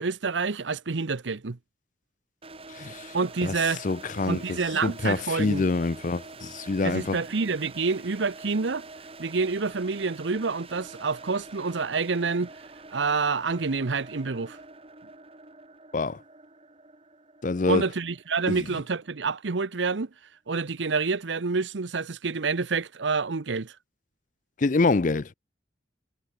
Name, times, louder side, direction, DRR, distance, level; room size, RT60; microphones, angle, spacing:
voice 1, 0.0-1.6 3.1-3.8 4.3-5.7 6.8-8.9 9.2-12.5 12.9-14.6 17.7-20.1 20.5-23.7, right 4 dB, 85° right, 0.8 m, -28 dB
sound 1, 2.4-19.3, right 3 dB, 30° right, 4.7 m, -46 dB
voice 2, 2.7-3.1 3.4-3.5 3.8-7.2 15.9-16.2 17.4-17.8 18.5-18.6 24.6-25.3, left 3 dB, 45° left, 0.5 m, -26 dB
head